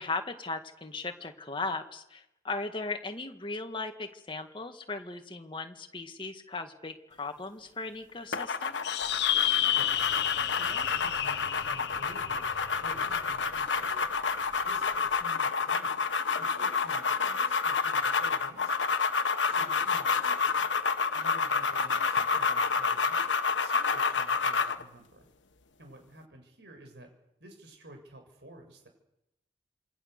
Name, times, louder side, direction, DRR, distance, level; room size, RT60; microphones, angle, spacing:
voice 1, 0.0-8.8 19.5-19.9, left 3 dB, 25° left, 6 dB, 2.0 m, -37 dB
sound 1, 8.3-24.8, left 5 dB, 85° left, 1.4 m, -29 dB
sound 2, 8.8-13.6, left 11 dB, 60° left, 0.9 m, -31 dB
sound 3, 9.2-21.3 21.6-21.7, equal, 45° right, 5.4 m, -59 dB
voice 2, 9.7-10.2 10.6-14.1 14.6-16.1 16.4-19.0 19.5-20.7 21.1-23.3 23.6-25.3 25.8-27.1 27.4-28.9, right 1 dB, 65° right, 4 dB, 6.9 m, -51 dB
27.5 x 24.0 x 6.8 m, 0.85 s
head